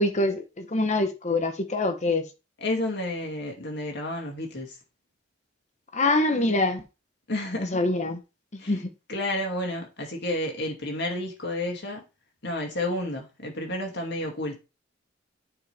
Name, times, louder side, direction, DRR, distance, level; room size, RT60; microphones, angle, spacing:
voice 1, 0.0-2.2 5.9-6.8 7.6-8.2 8.5-8.9, left 2 dB, 40° left, 1.1 m, -25 dB
voice 2, 2.6-4.7 7.3-7.8 8.6-8.8 9.1-12.0 12.4-14.6, left 1 dB, 65° left, 2.5 m, -31 dB
9.0 x 5.1 x 3.5 m
head